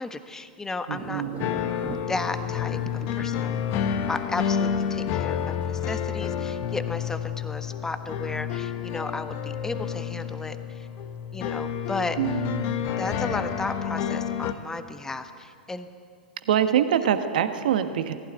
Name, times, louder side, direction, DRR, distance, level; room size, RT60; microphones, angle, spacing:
voice 1, 0.0-1.2 2.1-3.6 4.1-10.9 11.3-12.2 13.0-15.9, left 3 dB, 10° left, 9 dB, 1.3 m, -34 dB
sound 1, 0.9-6.1, right 7 dB, 30° right, 1.3 m, -43 dB
voice 2, 0.9-1.5 12.2-12.9 16.5-18.1, right 9 dB, 65° right, 9 dB, 1.4 m, -25 dB
sound 2, 1.4-14.5, left 8 dB, 45° left, 1.4 m, -29 dB
18.5 x 16.5 x 9.5 m, 2.3 s
figure-of-eight pair, 100°, 5 cm